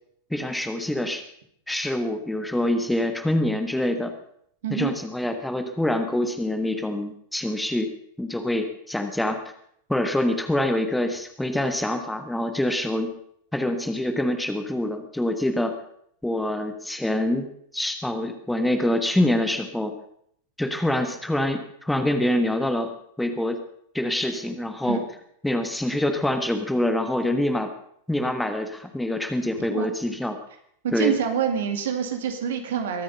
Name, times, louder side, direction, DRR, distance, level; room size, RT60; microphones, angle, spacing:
voice 1, 0.3-1.2 1.7-4.1 4.7-7.9 8.2-9.4 9.9-13.1 13.5-15.7 16.2-17.5 17.7-19.9 20.6-22.9 23.2-23.6 23.9-25.0 25.4-27.7 28.1-30.4 30.9-31.2, left 1 dB, 5° left, 7 dB, 1.4 m, -25 dB
voice 2, 30.8-33.0, right 7 dB, 60° right, 6 dB, 2.2 m, -26 dB
22.5 x 9.6 x 5.4 m, 0.68 s
figure-of-eight pair, 90°, 0 cm